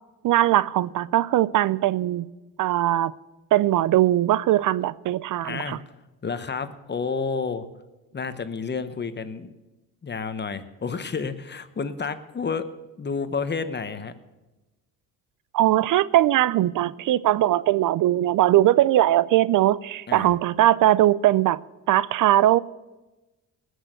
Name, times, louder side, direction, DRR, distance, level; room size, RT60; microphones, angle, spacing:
voice 1, 0.2-2.3 2.6-3.1 3.5-5.8 15.5-21.6 21.9-22.6, right 14 dB, 60° right, 0.5 m, -20 dB
voice 2, 5.4-5.8 6.2-7.6 8.1-9.5 10.0-12.7 13.0-14.1 20.1-20.3, left 5 dB, 30° left, 1.0 m, -30 dB
19.0 x 6.4 x 6.6 m
cardioid pair, 85°, 36 cm